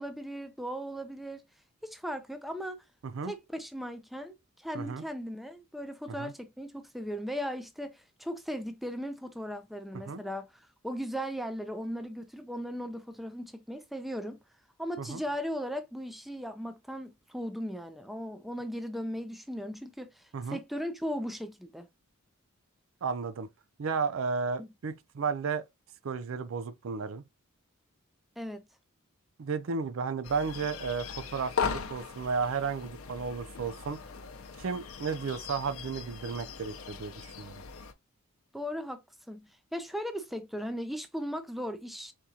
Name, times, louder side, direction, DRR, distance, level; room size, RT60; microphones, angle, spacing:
voice 1, 0.0-1.4 1.8-2.8 3.2-14.4 14.8-21.9 24.6-24.7 28.4-28.7 38.5-39.0 39.3-42.1, equal, ahead, 0.4 m, -37 dB
voice 2, 23.0-23.5 23.8-25.6 26.0-27.2 29.4-34.0 34.6-37.5, right 5 dB, 65° right, 0.4 m, -33 dB
sound 1, 30.2-37.9, left 6 dB, 75° left, 0.7 m, -39 dB
4.5 x 3.6 x 2.7 m
head